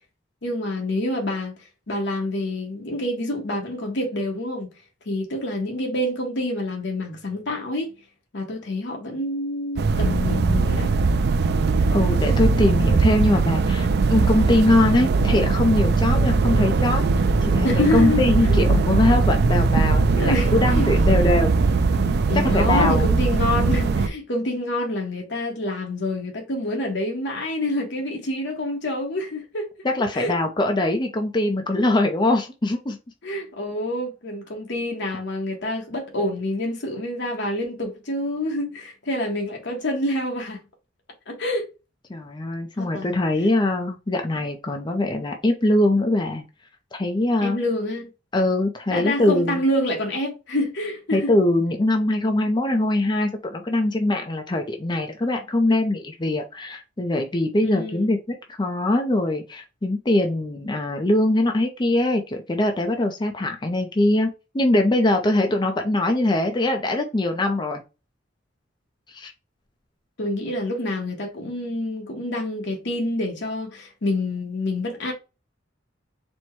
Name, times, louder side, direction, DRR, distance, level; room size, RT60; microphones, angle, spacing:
voice 1, 0.4-1.6 1.9-4.7 5.1-7.9 8.3-10.9 16.1-16.5 17.6-18.2 18.5-18.6 20.2-21.4 22.3-29.7 30.1-30.3 33.2-40.6 41.3-41.7 42.8-43.2 47.4-48.1 48.9-51.3 57.6-58.1 70.2-75.1, left 1 dB, 65° left, 1.2 m, -27 dB
sound 1, 9.8-24.1, right 4 dB, 60° right, 0.4 m, -20 dB
voice 2, 11.9-17.0 17.4-21.5 22.3-23.1 29.8-33.0 42.1-46.4 46.9-47.6 48.3-49.6 51.1-58.2 58.5-67.8 69.1-69.3, left 1 dB, 25° left, 0.5 m, -22 dB
4.3 x 2.2 x 4.5 m
head